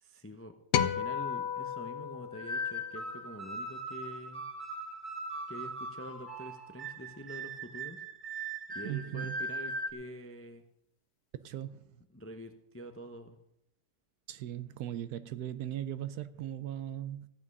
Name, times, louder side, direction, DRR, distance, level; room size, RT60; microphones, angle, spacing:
voice 1, 0.0-4.4 5.5-8.0 8.7-10.6 12.1-13.4, equal, 15° left, 0.4 m, -46 dB
sound 1, 0.7-3.2, left 8 dB, 80° left, 1.4 m, -33 dB
sound 2, 2.3-9.9, right 1 dB, 30° right, 1.7 m, -39 dB
voice 2, 8.8-9.4 11.3-12.0 14.3-17.3, right 11 dB, 70° right, 1.1 m, -38 dB
14.5 x 8.7 x 5.4 m
omnidirectional pair, 1.8 m